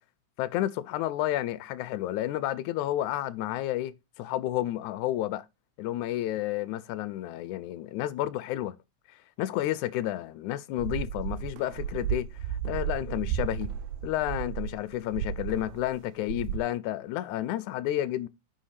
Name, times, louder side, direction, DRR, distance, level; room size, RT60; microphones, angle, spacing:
voice 1, 0.4-5.5 5.8-8.8 9.4-13.7 14.0-18.3, left 14 dB, 85° left, 2.1 m, -31 dB
sound 1, 10.8-16.0 16.2-16.6, right 9 dB, 80° right, 1.9 m, -33 dB
9.5 x 6.5 x 3.3 m
omnidirectional pair, 3.4 m